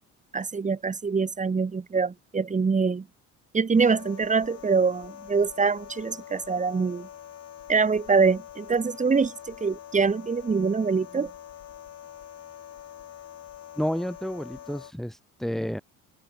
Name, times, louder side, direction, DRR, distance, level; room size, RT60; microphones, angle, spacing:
voice 1, 0.3-3.1 3.5-7.1 7.7-11.3, right 5 dB, 20° right, 2.6 m, -24 dB
sound 1, 3.7-14.9, left 11 dB, 50° left, 4.3 m, -45 dB
voice 2, 13.8-15.8, equal, ahead, 4.1 m, -30 dB
cardioid pair, 105°, 32 cm